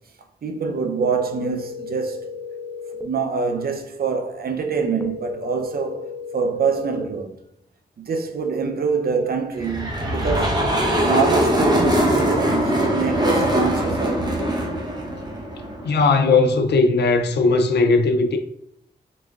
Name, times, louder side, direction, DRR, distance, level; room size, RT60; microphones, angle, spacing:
voice 1, 0.4-2.3 3.0-6.0 6.3-7.3 8.0-10.6 11.0-14.2, right 5 dB, 65° right, 0.6 m, -25 dB
sound 1, 1.0-3.0 5.0-7.0, left 4 dB, 10° left, 0.5 m, -34 dB
sound 2, 9.6-16.0, equal, 25° right, 0.9 m, -21 dB
voice 2, 15.8-18.4, left 3 dB, 85° left, 0.5 m, -18 dB
4.1 x 3.3 x 2.4 m
wide cardioid pair, 80°, 17 cm